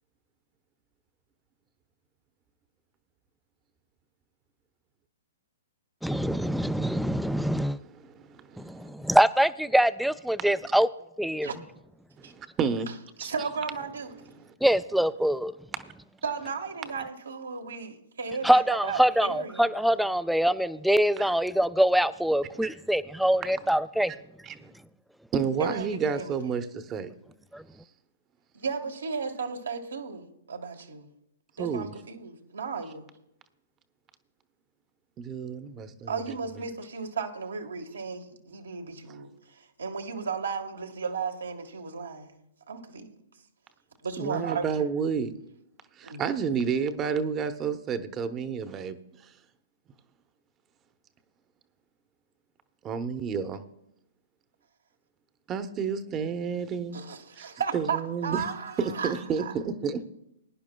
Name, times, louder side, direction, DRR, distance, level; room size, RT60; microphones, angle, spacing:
voice 1, 6.0-7.8 8.6-10.9 11.2-11.5 14.6-15.5 18.4-24.1 27.5-27.6, equal, ahead, 15 dB, 0.4 m, -24 dB
voice 2, 7.3-8.9 10.4-10.5 12.2-12.9 13.2-13.3 14.3-14.5 15.8-15.9 21.2-21.3 22.6-22.7 24.4-24.7 25.3-27.1 31.6-31.9 35.2-36.4 44.2-45.4 46.0-49.0 52.8-53.6 55.5-57.0 57.4-57.5 57.7-58.4 58.8-60.1, right 6 dB, 25° right, 9 dB, 0.9 m, -31 dB
voice 3, 13.2-14.4 16.2-19.8 25.6-26.7 28.5-31.1 31.6-33.0 36.1-42.4 42.7-43.2 44.0-44.8 46.0-46.2 56.9-59.5, right 5 dB, 80° right, 3 dB, 1.5 m, -35 dB
21.0 x 10.5 x 2.3 m, 0.84 s
hypercardioid pair, 120°, 0 cm